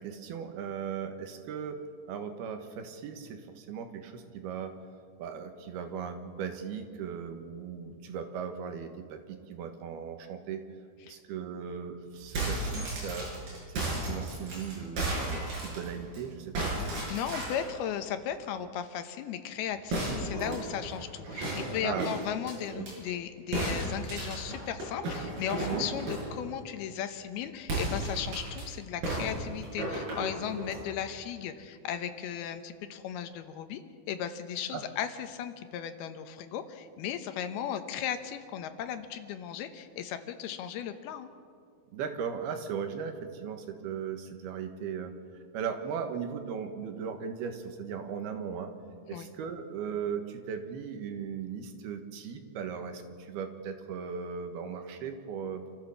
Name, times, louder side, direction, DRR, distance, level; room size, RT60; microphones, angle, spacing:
voice 1, 0.0-1.8 2.1-4.8 5.2-10.6 11.0-13.3 13.7-16.8 21.8-22.1 22.7-22.9 25.6-25.9 34.7-34.8 41.9-45.1 45.5-48.7 49.1-55.8, right 7 dB, 85° right, 6 dB, 3.4 m, -37 dB
sound 1, 12.2-16.2 16.5-17.7 19.9-22.9 23.5-26.3 27.6-28.6 29.0-30.8, right 2 dB, 65° right, 8.2 m, -34 dB
voice 2, 16.9-33.8 34.1-41.3 49.1-49.3, left 9 dB, 80° left, 9 dB, 3.0 m, -36 dB
27.5 x 14.5 x 7.1 m, 2.1 s
omnidirectional pair, 4.5 m